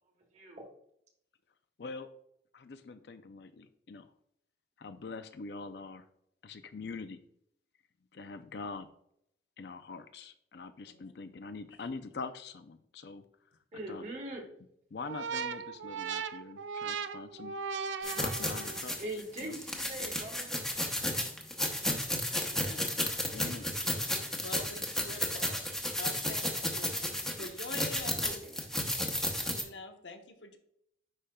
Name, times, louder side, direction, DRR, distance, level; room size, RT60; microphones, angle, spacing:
voice 1, 0.3-0.6 13.7-14.4 19.0-20.5 23.4-23.6 25.1-25.6 28.2-28.6, right 1 dB, 40° right, 2 dB, 1.3 m, -42 dB
voice 2, 2.5-4.1 4.8-6.1 6.4-7.2 8.1-8.9 9.6-13.2 13.9-14.0 14.9-17.6 18.2-19.0 19.4-19.5 23.3-23.7, left 4 dB, 65° left, 9 dB, 0.5 m, -44 dB
sound 1, 15.0-18.9, right 6 dB, 85° right, 0.4 m, -38 dB
sound 2, 18.0-29.6, left 1 dB, ahead, 0.8 m, -33 dB
voice 3, 22.3-22.8 23.4-23.5 24.4-25.4 25.9-26.9 27.4-28.4 29.5-30.6, left 2 dB, 80° left, 4 dB, 1.0 m, -45 dB
9.9 x 5.0 x 2.3 m, 0.72 s
head